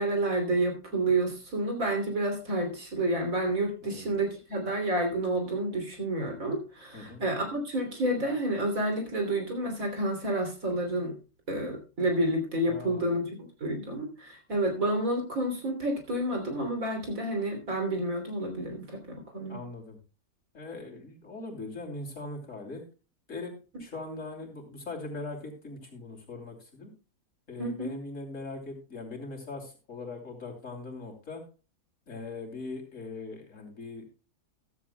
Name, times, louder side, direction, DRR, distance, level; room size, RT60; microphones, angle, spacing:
voice 1, 0.0-11.1 11.5-19.6 27.6-27.9, right 1 dB, 65° right, 4 dB, 3.4 m, -29 dB
voice 2, 3.8-4.1 6.9-7.2 12.6-13.1 19.5-20.0 20.5-22.8 23.3-26.9 27.5-31.4 32.1-34.0, left 3 dB, 55° left, 2 dB, 3.3 m, -40 dB
14.5 x 13.5 x 2.2 m, 0.33 s
omnidirectional pair, 1.6 m